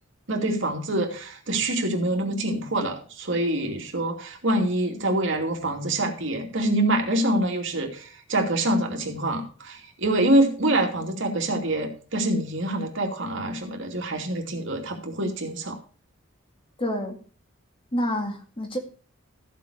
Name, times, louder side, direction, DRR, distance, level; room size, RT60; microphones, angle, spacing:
voice 1, 0.3-15.8, right 1 dB, 65° right, 2 dB, 2.6 m, -25 dB
voice 2, 16.8-17.2 17.9-18.8, equal, 25° left, 4 dB, 2.0 m, -28 dB
14.0 x 7.6 x 4.9 m, 0.38 s
head